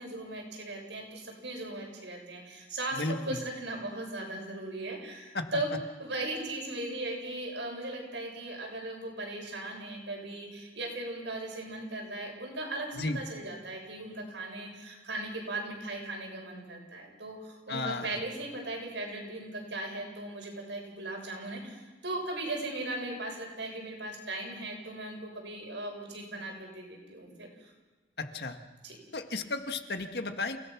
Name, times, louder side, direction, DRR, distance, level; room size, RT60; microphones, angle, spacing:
voice 1, 0.0-5.7 6.0-27.7 28.8-29.0, right 2 dB, 80° right, 1 dB, 7.1 m, -38 dB
voice 2, 2.9-3.4 5.3-5.5 13.0-13.2 17.7-18.2 28.2-28.6 29.1-30.6, left 2 dB, 65° left, 6 dB, 1.7 m, -34 dB
29.0 x 18.0 x 6.1 m, 1.3 s
head